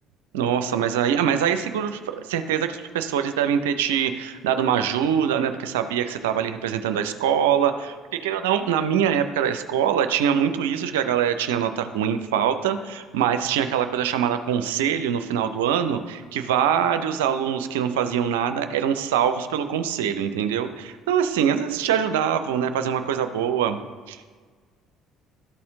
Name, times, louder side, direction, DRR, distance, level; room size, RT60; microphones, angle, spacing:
voice 1, 0.3-23.8 24.1-24.2, right 8 dB, 75° right, 9 dB, 0.5 m, -23 dB
12.5 x 4.2 x 3.7 m, 1.5 s
hypercardioid pair, 55°, 0 cm